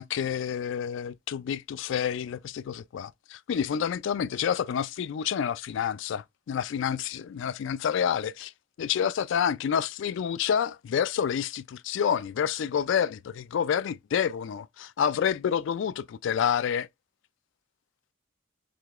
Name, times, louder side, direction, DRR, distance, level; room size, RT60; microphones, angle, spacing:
voice 1, 0.0-8.5 8.8-16.9, left 8 dB, 70° left, 0.3 m, -28 dB
4.8 x 3.6 x 2.4 m
head